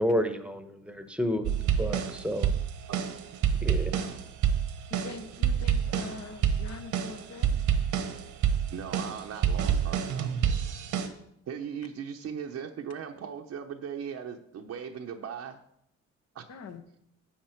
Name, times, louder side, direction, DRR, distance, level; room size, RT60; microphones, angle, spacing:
voice 1, 0.0-2.5 3.6-3.9, equal, 5° right, 9 dB, 1.1 m, -30 dB
sound 1, 1.4-11.1, right 8 dB, 80° right, 1.2 m, -28 dB
voice 2, 4.9-7.5 16.5-16.8, left 4 dB, 60° left, 9 dB, 1.2 m, -43 dB
voice 3, 8.7-10.3 11.5-15.6 16.3-16.5, right 7 dB, 60° right, 3 dB, 0.8 m, -38 dB
10.0 x 7.4 x 4.5 m, 0.75 s
cardioid pair, 90°, 30 cm